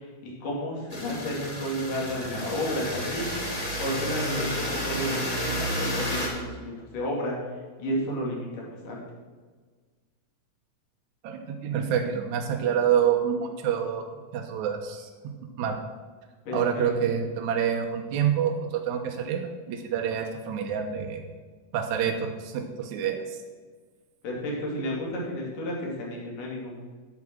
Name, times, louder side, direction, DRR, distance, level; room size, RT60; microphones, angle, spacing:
voice 1, 0.2-3.3 3.8-7.4 7.8-9.0 16.5-16.9 24.2-26.8, equal, 85° left, -3 dB, 4.2 m, -32 dB
sound 1, 0.9-6.3, equal, 15° left, 1.4 m, -31 dB
voice 2, 11.2-14.0 14.3-15.8 16.5-19.4 19.7-21.2 21.7-23.4, right 8 dB, 75° right, 2 dB, 2.2 m, -27 dB
9.6 x 9.0 x 6.1 m, 1.5 s
omnidirectional pair, 3.6 m